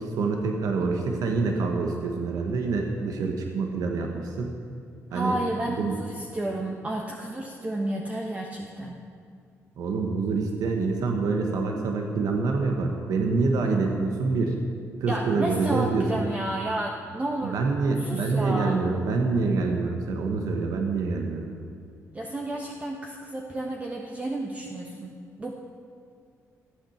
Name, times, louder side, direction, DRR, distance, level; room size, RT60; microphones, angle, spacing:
voice 1, 0.0-4.5 5.1-5.4 5.8-6.0 9.8-14.6 15.0-16.2 17.4-21.5, right 4 dB, 80° right, 2 dB, 1.3 m, -26 dB
voice 2, 5.1-9.0 15.1-17.6 18.0-18.8 22.1-25.5, right 1 dB, 25° right, 0 dB, 1.2 m, -31 dB
15.0 x 8.9 x 7.2 m, 2.3 s
cardioid pair, 95°, 6 cm